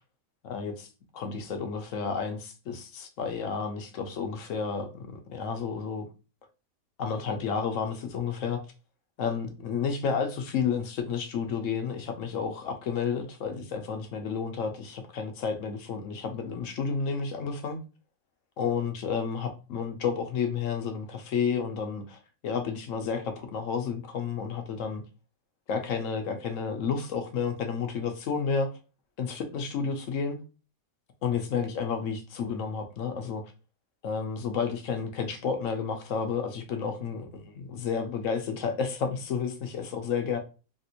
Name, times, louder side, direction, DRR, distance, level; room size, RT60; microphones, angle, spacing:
voice 1, 0.4-0.9 1.1-6.1 7.0-8.6 9.2-17.8 18.6-25.0 25.7-28.7 29.2-30.4 31.2-33.4 34.0-40.4, left 6 dB, 65° left, 0.9 m, -31 dB
3.4 x 2.5 x 2.8 m
omnidirectional pair, 1.7 m